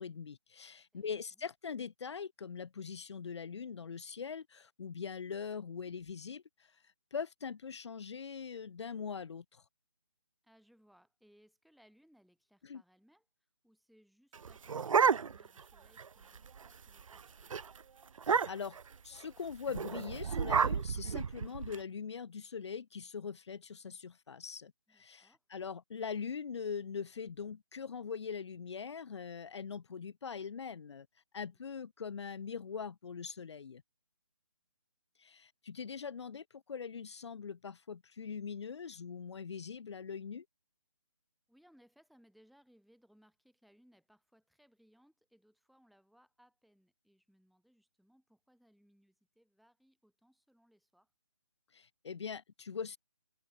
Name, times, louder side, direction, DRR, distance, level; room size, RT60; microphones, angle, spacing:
voice 1, 0.0-6.8 7.1-9.6 12.6-12.8 18.3-18.8 19.0-31.1 31.3-33.8 35.2-40.4 51.7-53.0, left 6 dB, 55° left, 1.8 m, -42 dB
voice 2, 0.9-1.4 10.4-13.3 13.6-16.4 16.9-17.6 24.9-25.4 31.5-31.6 41.5-51.1, equal, ahead, 4.0 m, -68 dB
sound 1, 14.3-15.6 16.0-16.1 16.3-16.7 17.0-17.2 17.5-17.6 18.2-18.8 19.7-21.8, right 6 dB, 75° right, 0.5 m, -31 dB
figure-of-eight pair, 155°, 17 cm